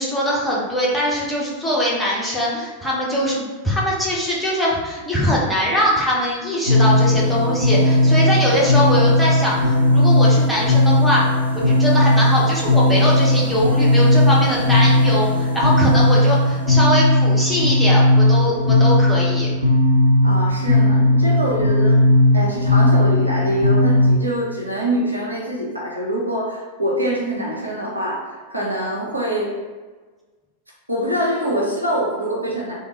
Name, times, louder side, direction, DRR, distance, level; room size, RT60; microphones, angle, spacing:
voice 1, 0.0-11.2 11.5-19.5, equal, ahead, -6 dB, 1.0 m, -22 dB
sound 1, 6.7-24.2, left 1 dB, 90° left, 0.5 m, -16 dB
voice 2, 20.2-22.0 22.3-29.5 30.9-32.7, right 1 dB, 85° right, -4 dB, 0.8 m, -24 dB
3.4 x 2.5 x 3.0 m, 1.3 s
figure-of-eight pair, 90°, 0 cm